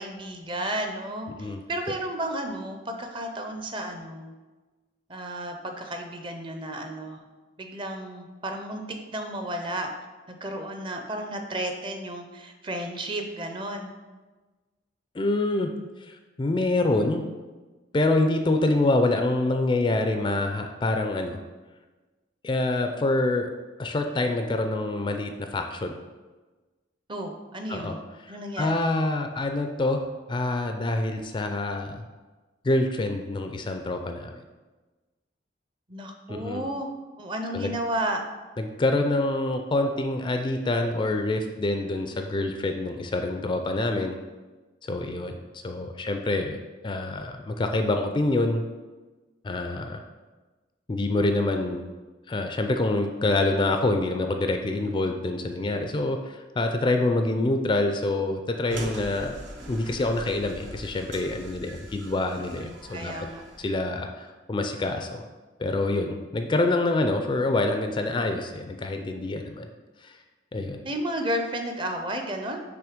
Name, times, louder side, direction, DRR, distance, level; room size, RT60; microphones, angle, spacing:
voice 1, 0.0-4.3 5.1-7.2 7.6-8.8 9.1-9.9 10.3-13.9 27.1-28.0 28.3-28.8 35.9-36.9 37.2-38.2 62.5-63.4 70.8-72.6, right 1 dB, 25° right, 4 dB, 0.5 m, -32 dB
voice 2, 15.1-15.7 16.0-17.2 17.9-21.4 22.4-23.5 23.8-26.0 27.7-28.0 28.2-30.0 30.3-32.0 32.6-34.4 36.3-36.7 37.5-37.7 38.6-44.2 44.8-46.6 46.8-48.6 49.4-50.0 50.9-51.8 52.3-59.3 59.7-63.1 63.6-65.2 65.6-69.7 70.0-70.2 70.5-70.8, left 2 dB, 25° left, 5 dB, 0.3 m, -26 dB
sound 1, 58.7-63.8, right 1 dB, 75° right, 0.9 m, -41 dB
6.0 x 3.1 x 5.0 m, 1.3 s
head